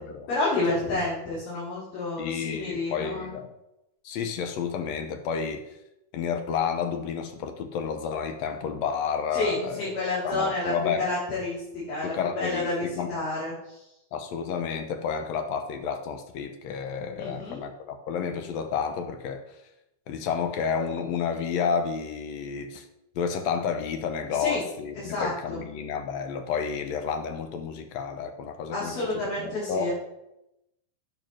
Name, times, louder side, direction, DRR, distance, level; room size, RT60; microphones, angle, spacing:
voice 1, 0.3-3.4 9.3-10.7 11.0-13.8 17.2-17.6 24.4-24.6 25.0-25.7 28.7-29.9, left 2 dB, 85° left, -11 dB, 5.0 m, -30 dB
voice 2, 2.2-3.5 4.0-5.7 6.1-10.0 10.2-11.1 12.0-13.1 14.1-19.6 20.1-22.9 23.2-29.0 29.4-29.9, left 6 dB, 70° left, 7 dB, 1.7 m, -30 dB
9.0 x 5.4 x 6.1 m, 0.88 s
omnidirectional pair, 3.5 m